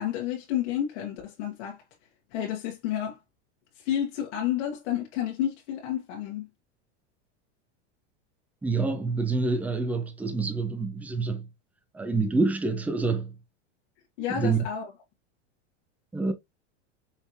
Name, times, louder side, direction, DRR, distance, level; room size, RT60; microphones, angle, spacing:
voice 1, 0.0-1.8 2.3-3.2 3.8-6.5 14.2-14.9, left 10 dB, 70° left, 1.6 m, -30 dB
voice 2, 8.6-11.5 11.9-13.3 14.3-14.6 16.1-16.3, right 3 dB, 5° right, 0.5 m, -27 dB
5.6 x 3.1 x 2.7 m
supercardioid pair, 145°, 36 cm